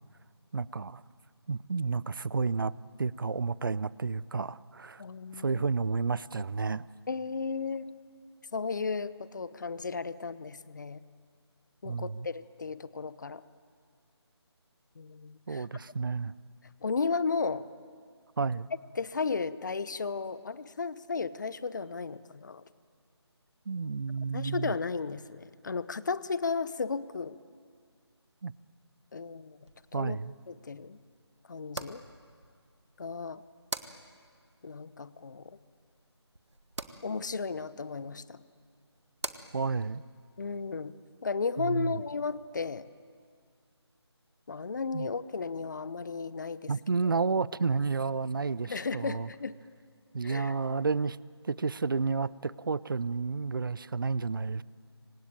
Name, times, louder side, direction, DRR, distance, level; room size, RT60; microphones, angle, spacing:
voice 1, 0.5-1.0 1.5-2.7 3.0-5.0 5.3-6.9 11.8-12.3 15.5-16.3 18.4-18.7 23.7-24.7 28.4-28.5 29.9-30.3 39.5-40.0 41.6-42.0 44.9-45.1 46.7-49.3 50.1-51.2 51.4-54.6, right 4 dB, 50° right, 21 dB, 0.6 m, -31 dB
voice 2, 5.0-5.6 7.1-7.9 8.5-11.0 11.8-13.4 15.0-15.7 16.8-17.6 18.9-22.6 24.3-27.4 29.1-30.2 30.5-31.0 31.5-32.0 33.0-33.4 34.6-35.6 37.0-38.4 40.4-42.9 44.5-46.7 47.0-47.1 48.6-49.6 50.2-50.5, left 4 dB, 45° left, 16 dB, 0.9 m, -34 dB
sound 1, 29.6-42.5, right 2 dB, 85° right, 1.9 m, -47 dB
26.5 x 24.5 x 9.0 m, 2.1 s
figure-of-eight pair, 160°, 14 cm